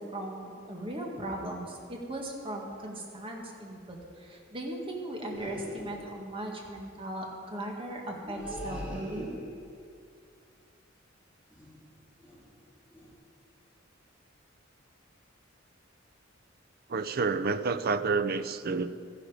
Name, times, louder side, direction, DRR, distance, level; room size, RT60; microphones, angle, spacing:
voice 1, 0.0-9.3, right 1 dB, 30° right, 0 dB, 1.8 m, -38 dB
sound 1, 5.3-6.2 8.2-9.8 11.5-11.9 12.2-12.5 12.9-13.1, equal, 5° right, 2.6 m, -41 dB
voice 2, 16.9-18.9, right 4 dB, 50° right, 13 dB, 0.5 m, -28 dB
13.5 x 11.0 x 5.1 m, 2.3 s
head